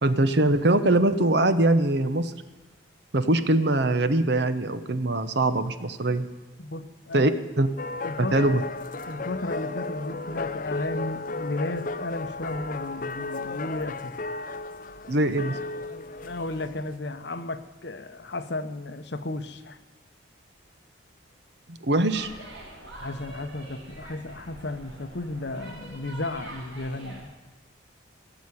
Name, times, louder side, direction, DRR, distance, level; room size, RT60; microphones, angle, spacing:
voice 1, 0.0-2.3 3.1-6.3 7.1-7.3 7.6-7.7 8.2-8.6 15.1-15.6 21.7-22.3, right 2 dB, 60° right, 11 dB, 0.9 m, -22 dB
voice 2, 6.6-7.3 8.0-8.5 9.1-14.1 16.2-19.8 23.0-27.3, left 2 dB, 60° left, 9 dB, 1.0 m, -34 dB
sound 1, 7.8-16.9, left 3 dB, 45° left, 0.6 m, -34 dB
sound 2, 22.1-27.2, right 1 dB, 75° right, 3.9 m, -44 dB
17.0 x 7.1 x 9.7 m, 1.2 s
head